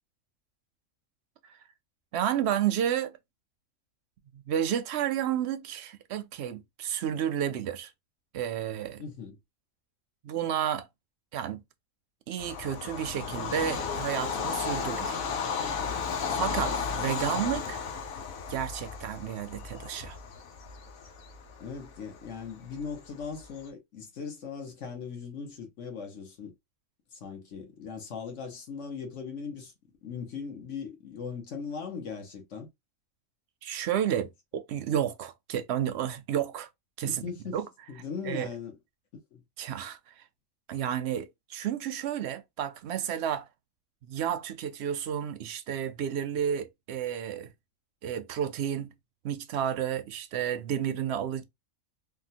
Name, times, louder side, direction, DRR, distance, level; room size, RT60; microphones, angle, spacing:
voice 1, 2.1-3.2 4.3-7.9 8.3-9.0 10.2-10.9 11.3-11.6 12.3-15.2 16.3-17.8 18.5-20.2 33.6-36.7 37.0-37.2 37.5-37.7 38.3-38.5 39.6-40.0 40.7-43.5 44.1-47.5 48.0-48.9 49.2-51.4, right 9 dB, 65° right, 0.7 m, -31 dB
voice 2, 9.0-9.4 21.6-26.5 27.1-29.7 30.0-32.7 37.2-37.6 37.9-38.8 39.3-39.4, left 6 dB, 60° left, 1.3 m, -39 dB
Bird vocalization bird call bird song / Train, 12.4-23.6, left 6 dB, 80° left, 1.1 m, -34 dB
3.6 x 2.3 x 2.6 m
omnidirectional pair, 1.4 m